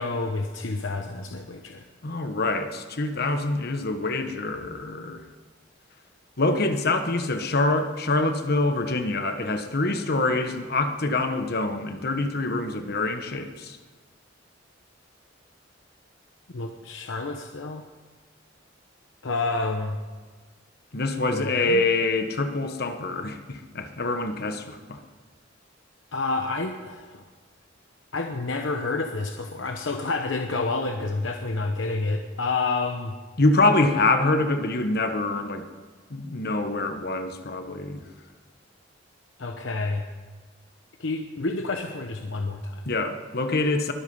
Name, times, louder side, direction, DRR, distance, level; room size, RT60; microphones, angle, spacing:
voice 1, 0.0-1.8 16.5-17.8 19.2-20.0 21.3-21.8 26.1-27.2 28.1-33.1 39.4-40.1 41.0-42.8, left 3 dB, 75° left, 4 dB, 0.9 m, -29 dB
voice 2, 2.0-5.2 6.4-13.8 20.9-25.0 33.4-35.6 36.1-38.0 42.8-43.9, left 2 dB, 55° left, 7 dB, 1.2 m, -25 dB
21.5 x 8.3 x 5.5 m, 1.4 s
head